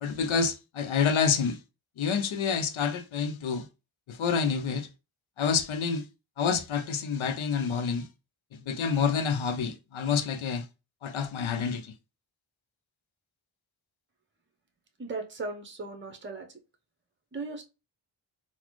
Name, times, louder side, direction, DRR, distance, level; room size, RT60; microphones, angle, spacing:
voice 1, 0.0-1.6 2.0-3.7 4.1-4.9 5.4-6.1 6.4-8.1 8.7-10.6 11.0-11.9, left 6 dB, 80° left, 0.6 m, -28 dB
voice 2, 15.0-16.5 17.3-17.7, right 3 dB, 25° right, 0.8 m, -37 dB
4.0 x 2.1 x 3.0 m
cardioid pair, 55°, 47 cm